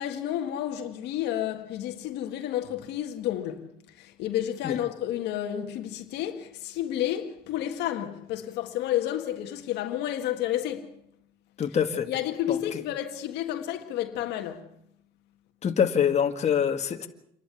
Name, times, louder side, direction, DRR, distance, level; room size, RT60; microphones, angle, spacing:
voice 1, 0.0-3.7 4.0-10.9 12.1-14.7, left 12 dB, 85° left, 1.7 m, -31 dB
voice 2, 11.6-12.1 12.5-12.8 15.6-17.1, left 8 dB, 40° left, 1.9 m, -25 dB
28.0 x 11.5 x 8.3 m
cardioid pair, 110°, 17 cm